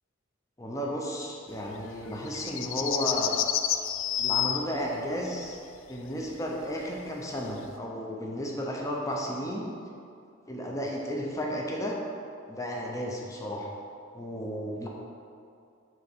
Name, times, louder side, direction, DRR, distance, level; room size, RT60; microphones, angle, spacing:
voice 1, 0.6-3.3 4.2-5.6 5.9-9.7 10.5-12.0 12.5-13.7 14.1-14.9, equal, 15° left, -1 dB, 0.8 m, -33 dB
sound 1, 1.9-4.6 6.6-6.7 7.7-7.8, left 10 dB, 80° left, 0.4 m, -28 dB
6.3 x 4.5 x 6.2 m, 2.4 s
head